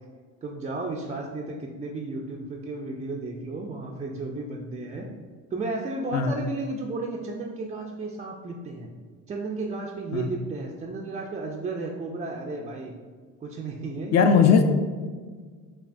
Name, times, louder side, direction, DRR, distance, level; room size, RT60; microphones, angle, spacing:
voice 1, 0.4-5.1 5.5-8.9 9.3-12.9 13.4-14.4, right 3 dB, 20° right, -1 dB, 0.3 m, -33 dB
voice 2, 14.1-14.6, left 6 dB, 45° left, 7 dB, 0.5 m, -18 dB
5.5 x 2.3 x 2.5 m, 1.5 s
hypercardioid pair, 70°, 39 cm